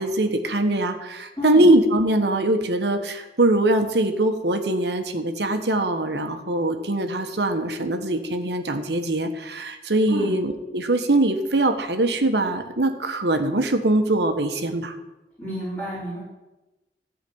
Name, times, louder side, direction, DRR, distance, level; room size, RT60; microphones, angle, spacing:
voice 1, 0.0-14.9, right 1 dB, 75° right, 6 dB, 1.3 m, -22 dB
voice 2, 15.4-16.2, left 1 dB, 10° left, -12 dB, 5.4 m, -29 dB
14.0 x 5.1 x 8.7 m, 1.0 s
head